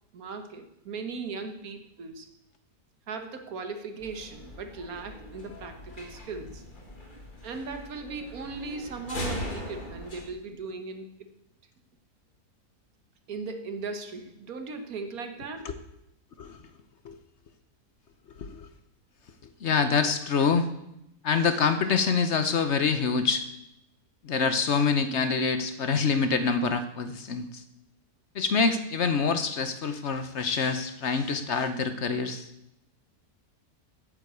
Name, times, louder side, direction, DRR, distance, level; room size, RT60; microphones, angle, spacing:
voice 1, 0.1-2.3 3.1-6.6 7.4-11.3 13.3-15.7, right 4 dB, 75° right, 7 dB, 1.7 m, -38 dB
sound 1, 4.0-10.2, equal, 35° left, 1.8 m, -40 dB
voice 2, 19.6-20.7 21.2-23.4 24.2-27.5 28.3-32.5, left 5 dB, 55° left, 10 dB, 1.0 m, -26 dB
9.1 x 8.0 x 8.0 m, 0.83 s
omnidirectional pair, 1.6 m